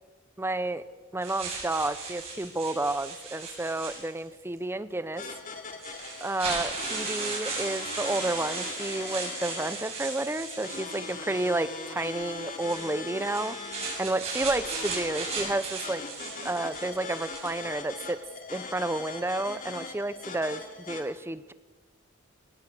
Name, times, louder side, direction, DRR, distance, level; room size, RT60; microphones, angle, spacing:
voice 1, 0.4-0.8 1.1-5.2 6.2-13.6 14.0-16.0 16.4-18.2 18.5-20.6 20.9-21.5, right 2 dB, 10° right, 14 dB, 0.6 m, -31 dB
sound 1, 1.2-4.4 5.2-5.3 5.8-11.6 12.5-17.7, right 4 dB, 30° right, 7.7 m, -37 dB
sound 2, 5.2-21.0, left 4 dB, 40° left, 2.6 m, -40 dB
23.5 x 18.0 x 6.6 m, 1.3 s
head